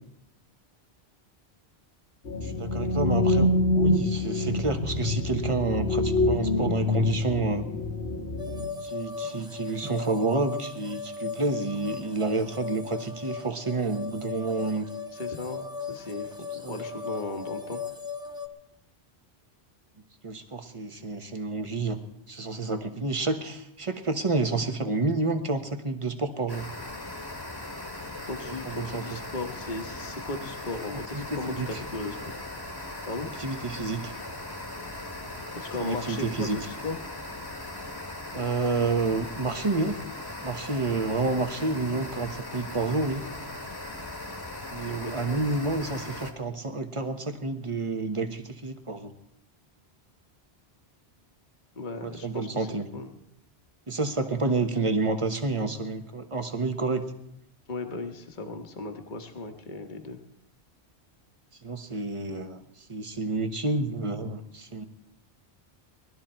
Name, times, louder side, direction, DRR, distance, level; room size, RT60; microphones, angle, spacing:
sound 1, 2.3-8.7, left 2 dB, 85° left, 1.5 m, -25 dB
voice 1, 2.4-7.7 8.8-14.8 16.6-16.8 20.2-22.0 22.3-26.6 28.4-29.2 30.9-31.8 33.4-34.1 35.8-36.6 38.3-40.0 40.4-43.2 44.7-49.1 52.0-52.9 53.9-57.0 61.6-62.6 62.9-64.9, right 3 dB, 30° right, 6 dB, 1.2 m, -29 dB
sound 2, 8.4-18.5, left 5 dB, 5° right, 0.9 m, -37 dB
voice 2, 15.1-17.8 28.2-32.2 33.1-33.3 35.5-36.9 44.9-45.6 51.7-53.1 57.7-60.2, left 2 dB, 45° left, 5 dB, 1.4 m, -36 dB
sound 3, 26.5-46.3, left 2 dB, 20° left, 1.5 m, -39 dB
20.5 x 12.5 x 4.4 m, 0.77 s
omnidirectional pair, 1.1 m